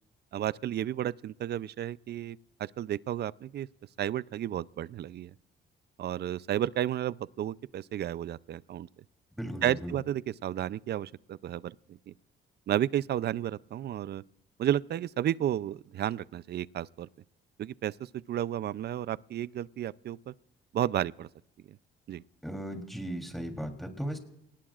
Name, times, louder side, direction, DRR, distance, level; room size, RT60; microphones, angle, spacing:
voice 1, 0.3-3.7 4.0-5.3 6.0-8.9 9.6-12.1 12.7-14.2 14.6-17.1 17.6-20.3 20.7-21.3 21.7-21.8 22.1-22.2, right 11 dB, 55° right, 0.5 m, -32 dB
voice 2, 9.4-9.9 22.4-24.2, right 1 dB, ahead, 3.3 m, -36 dB
29.0 x 19.0 x 2.5 m
cardioid pair, 90°, 20 cm